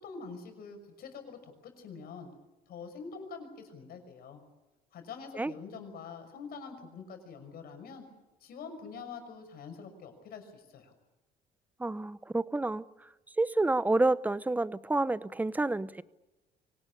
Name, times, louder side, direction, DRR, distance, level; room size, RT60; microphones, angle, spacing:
voice 1, 0.0-2.3 2.7-4.4 4.9-8.0 8.4-10.9, left 5 dB, 65° left, 6.0 m, -45 dB
voice 2, 11.8-12.9 13.4-16.0, right 2 dB, 10° right, 0.7 m, -29 dB
24.5 x 18.5 x 8.5 m
cardioid pair, 110°, 17 cm